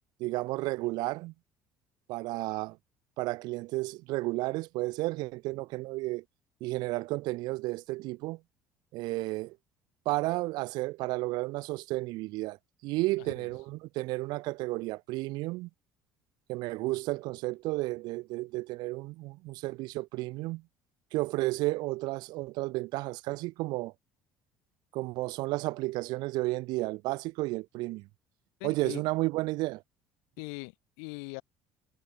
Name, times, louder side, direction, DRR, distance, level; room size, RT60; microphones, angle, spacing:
voice 1, 0.2-1.3 2.1-2.8 3.2-6.2 6.6-8.4 8.9-9.6 10.1-12.6 12.8-15.7 16.5-20.6 21.1-23.9 24.9-28.1 28.6-29.8, right 21 dB, 75° right, 1.8 m, -32 dB
voice 2, 28.6-29.0 30.4-31.4, left 40 dB or more, 85° left, 1.8 m, -41 dB
supercardioid pair, 95°, 7 cm